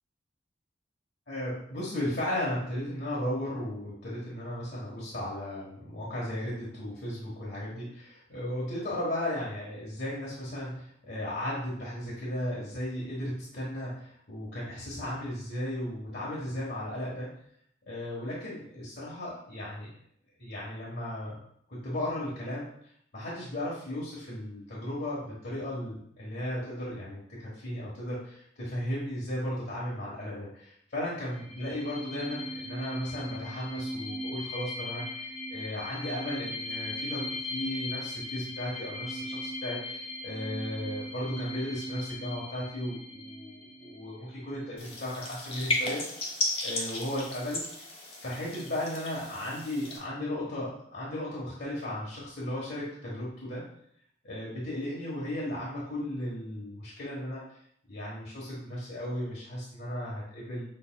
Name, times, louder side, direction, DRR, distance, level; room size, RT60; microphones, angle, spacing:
voice 1, 1.3-17.3 17.9-19.9 20.4-21.4 21.7-22.7 23.1-46.0 46.6-47.6 48.2-53.6 54.2-57.4 57.9-60.6, left 1 dB, 65° left, -6 dB, 1.2 m, -35 dB
sound 1, 31.3-44.6, left 1 dB, ahead, 1.7 m, -39 dB
sound 2, 44.8-50.0, left 2 dB, 35° left, 1.0 m, -34 dB
6.5 x 3.6 x 2.2 m, 0.68 s
head